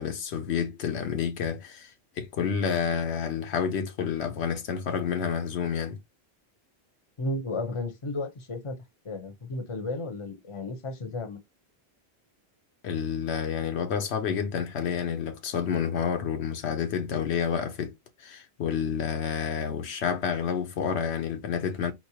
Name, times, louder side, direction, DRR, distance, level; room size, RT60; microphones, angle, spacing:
voice 1, 0.0-1.9 2.2-6.0 12.8-17.9 18.2-21.9, left 7 dB, 80° left, 1.0 m, -29 dB
voice 2, 7.2-8.8 9.0-11.4, left 2 dB, 30° left, 0.7 m, -33 dB
4.3 x 2.1 x 2.8 m
omnidirectional pair, 1.1 m